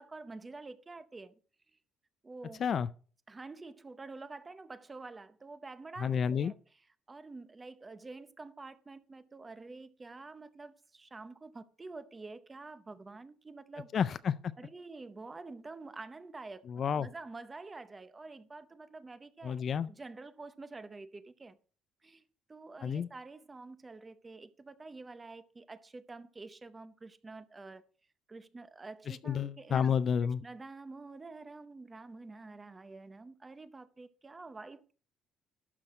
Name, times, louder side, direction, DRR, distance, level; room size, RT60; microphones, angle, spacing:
voice 1, 0.0-1.4 2.2-2.6 3.3-6.6 7.1-13.9 14.6-21.6 22.0-22.2 22.5-27.8 28.3-29.9 30.4-34.9, right 3 dB, 15° right, 0.7 m, -48 dB
voice 2, 6.0-6.5 13.9-14.4 16.7-17.1 19.4-19.9 22.8-23.1 29.1-30.4, left 7 dB, 35° left, 0.4 m, -30 dB
12.0 x 6.1 x 4.8 m
cardioid pair, 165°, 0 cm